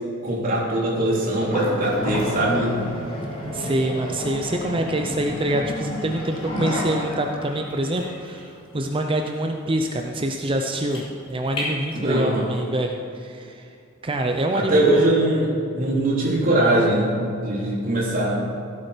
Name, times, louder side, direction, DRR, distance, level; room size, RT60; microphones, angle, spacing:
voice 1, 0.2-2.7 11.9-12.4 14.5-18.4, right 1 dB, 45° right, -5 dB, 3.4 m, -21 dB
sound 1, 1.4-12.4, left 1 dB, 30° left, 3.8 m, -31 dB
voice 2, 3.5-13.7 14.0-14.9, right 1 dB, 25° right, 4 dB, 0.6 m, -25 dB
16.5 x 8.5 x 5.1 m, 2.5 s
head